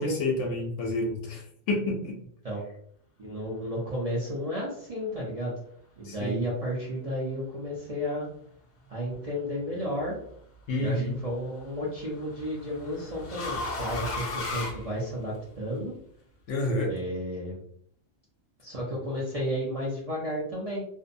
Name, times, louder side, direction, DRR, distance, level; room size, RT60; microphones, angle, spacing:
voice 1, 0.0-2.1 6.0-6.4 10.7-11.2 16.5-16.9, left 1 dB, 70° left, 1 dB, 0.9 m, -29 dB
voice 2, 3.2-5.6 6.0-8.3 8.9-10.2 10.8-15.9 16.8-17.6 18.6-20.8, equal, 40° right, -6 dB, 0.6 m, -32 dB
sound 1, 9.7-10.1 11.6-15.6, left 2 dB, 50° left, 0.6 m, -36 dB
2.6 x 2.0 x 2.5 m, 0.64 s
omnidirectional pair, 1.3 m